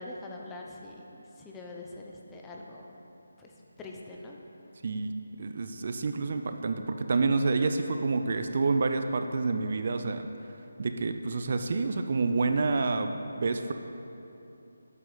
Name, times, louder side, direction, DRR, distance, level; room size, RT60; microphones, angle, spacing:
voice 1, 0.0-3.0 3.4-4.4, left 2 dB, 10° left, -1 dB, 0.6 m, -44 dB
voice 2, 5.4-10.3 10.8-13.7, right 3 dB, 50° right, 7 dB, 0.4 m, -28 dB
8.0 x 7.3 x 3.9 m, 2.9 s
figure-of-eight pair, 160°, 0 cm